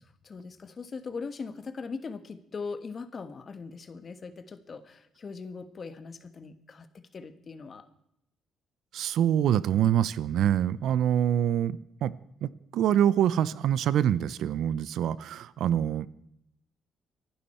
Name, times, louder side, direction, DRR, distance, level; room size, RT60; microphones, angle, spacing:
voice 1, 0.2-7.9, left 4 dB, 45° left, 11 dB, 1.3 m, -40 dB
voice 2, 8.9-12.1 12.4-16.1, right 10 dB, 80° right, 18 dB, 0.6 m, -25 dB
25.0 x 11.5 x 4.3 m, 0.76 s
cardioid pair, 90°, 0 cm